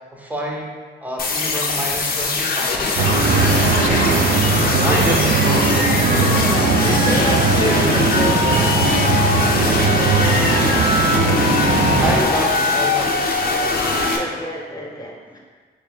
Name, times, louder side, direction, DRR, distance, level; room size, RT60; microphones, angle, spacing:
voice 1, 0.1-0.7 1.0-3.1 4.8-5.9 11.3-13.8 15.3-15.4, equal, 10° right, -2 dB, 0.8 m, -28 dB
sound 1, 1.2-14.2, left 3 dB, 50° left, 0.6 m, -21 dB
sound 2, 3.0-12.2, right 4 dB, 85° right, 0.5 m, -18 dB
voice 2, 3.6-5.1 5.5-6.5 6.7-8.9 9.7-10.8 12.4-12.5 14.1-15.4, equal, 20° left, -2 dB, 0.9 m, -30 dB
3.1 x 3.1 x 3.7 m, 1.5 s
cardioid pair, 75°, 19 cm